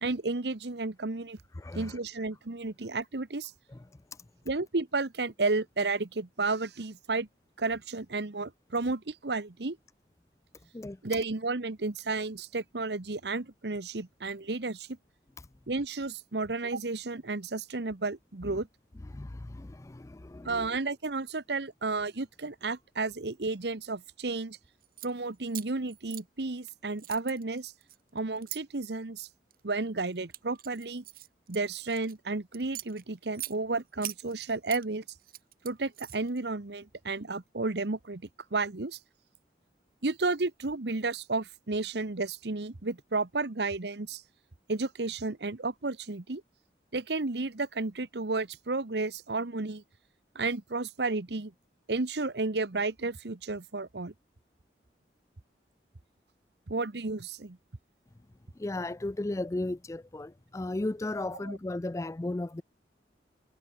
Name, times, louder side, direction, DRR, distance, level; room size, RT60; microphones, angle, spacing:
voice 1, 0.0-1.4 1.7-3.5 4.4-7.3 7.6-9.8 11.0-14.9 15.7-18.7 20.4-24.6 25.0-27.7 28.1-29.3 29.6-31.0 31.5-35.0 35.6-38.2 38.5-39.0 40.0-44.2 44.7-46.4 46.9-49.8 50.3-51.5 51.9-54.1 56.7-57.6 61.4-61.6, right 3 dB, 75° right, 1.1 m, -32 dB
voice 2, 1.6-2.0 3.7-3.8 10.7-11.0 19.1-20.7 58.6-62.6, left 2 dB, 20° left, 0.4 m, -35 dB
sound 1, 24.8-25.1 25.5-26.7 27.0-28.6 29.3-29.6 30.1-32.1 32.5-33.6 34.0-34.8 35.2-36.4, right 15 dB, 55° right, 0.9 m, -42 dB
head